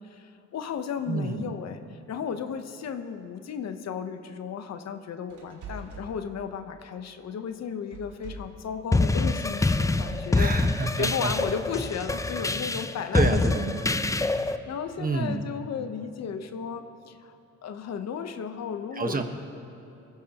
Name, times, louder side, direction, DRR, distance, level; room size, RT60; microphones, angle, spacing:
voice 1, 0.1-10.5 11.0-13.4 13.8-13.9 14.2-17.4 17.6-19.2, left 7 dB, 60° left, 8 dB, 1.0 m, -34 dB
voice 2, 1.1-1.5 10.3-11.3 12.8-12.9 13.1-13.8 15.0-15.5 18.9-19.2, right 3 dB, 30° right, 5 dB, 1.3 m, -28 dB
sound 1, 5.3-6.1 7.9-8.6 9.5-10.3, right 3 dB, 75° right, 2.7 m, -41 dB
sound 2, 8.9-14.6, left 2 dB, 10° left, 0.5 m, -25 dB
23.0 x 15.5 x 3.0 m, 3.0 s
cardioid pair, 90°, 30 cm